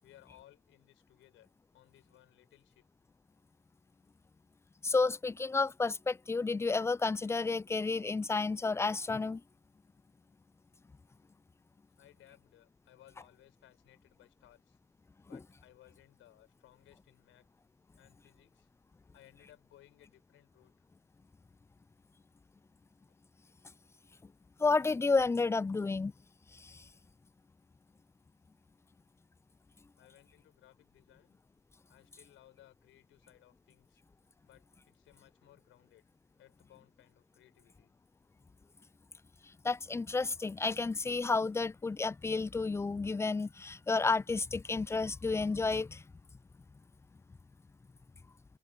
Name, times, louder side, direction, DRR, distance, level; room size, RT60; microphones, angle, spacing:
voice 1, 0.0-2.9 12.0-14.8 15.3-17.5 18.0-18.7 19.1-20.9 23.1-23.2 30.0-31.4 31.9-34.0 34.4-36.1 36.4-37.9, left 13 dB, 85° left, 5.5 m, -62 dB
voice 2, 4.8-9.4 15.3-15.4 24.6-26.1 26.5-26.8 39.6-46.0, left 3 dB, 15° left, 0.3 m, -31 dB
cardioid pair, 90°, 20 cm